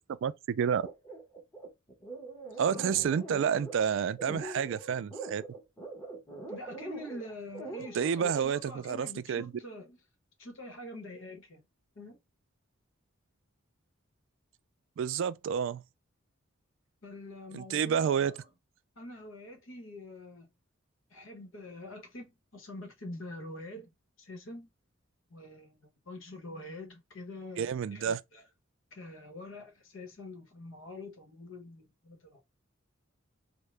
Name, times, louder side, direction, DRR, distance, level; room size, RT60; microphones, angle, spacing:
voice 1, 0.2-0.9 2.6-5.4 7.9-9.5 15.0-15.8 17.5-18.3 27.6-28.2, right 7 dB, 65° right, 0.3 m, -29 dB
sound 1, 0.8-8.4, right 2 dB, 15° left, 1.0 m, -43 dB
voice 2, 2.5-2.8 6.5-10.0 10.4-11.6 12.0-12.2 17.0-18.4 19.0-20.5 21.1-24.7 25.3-28.4 28.9-32.4, left 1 dB, 75° left, 1.0 m, -45 dB
3.7 x 2.1 x 3.2 m
head